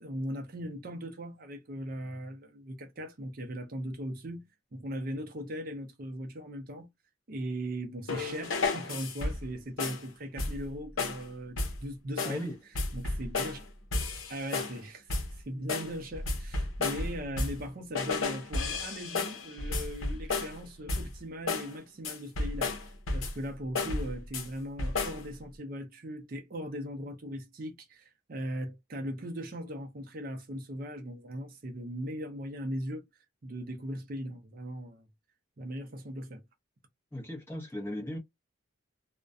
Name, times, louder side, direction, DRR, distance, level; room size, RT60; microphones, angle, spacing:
voice 1, 0.0-4.4 4.7-6.9 7.3-12.5 12.9-13.6 14.3-22.7 23.1-33.0 33.4-35.1 35.6-36.4, equal, 45° right, 0.5 m, -39 dB
sound 1, 8.1-9.5 9.8-10.1 10.4-10.7 11.0-11.3 11.6-11.8 12.2-12.5 12.8-13.6 13.9-14.8 15.1-15.4 15.7-17.7 18.0-20.6 20.9-21.2 21.5-21.7 22.0-23.4 23.8-24.5 24.8-25.3, left 3 dB, 80° left, 0.7 m, -33 dB
voice 2, 12.2-12.6 37.1-38.2, left 1 dB, 10° left, 0.7 m, -37 dB
2.3 x 2.1 x 2.5 m
head